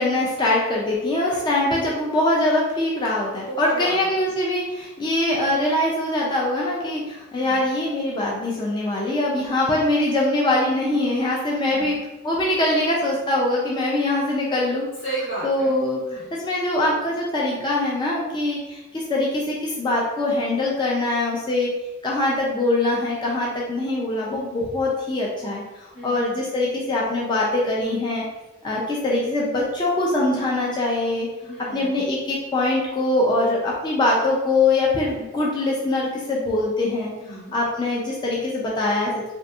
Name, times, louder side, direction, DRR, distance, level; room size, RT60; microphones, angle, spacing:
voice 1, 0.0-11.9 12.2-14.9 15.4-21.7 22.0-28.2 28.6-31.3 31.7-37.1 37.5-39.3, left 2 dB, 20° left, -4 dB, 0.3 m, -23 dB
voice 2, 3.4-4.1 7.3-7.6 10.9-11.3 11.6-12.0 15.0-15.7 16.0-16.3 25.9-26.4 31.4-32.0 37.2-37.5, right 2 dB, 80° left, -9 dB, 1.5 m, -34 dB
2.6 x 2.5 x 2.3 m, 1.1 s
head